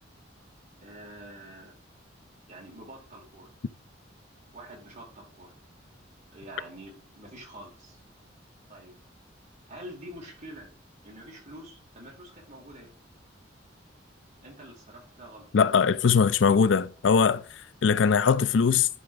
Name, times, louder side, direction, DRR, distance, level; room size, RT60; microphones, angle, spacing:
voice 1, 0.8-1.8 2.5-3.5 4.5-5.5 6.3-8.0 8.7-9.0 9.7-10.7 11.0-12.9 14.4-15.5, right 1 dB, 40° right, 4.6 m, -46 dB
voice 2, 15.5-17.4 17.8-18.9, left 6 dB, 75° left, 0.5 m, -21 dB
11.0 x 5.0 x 3.6 m
head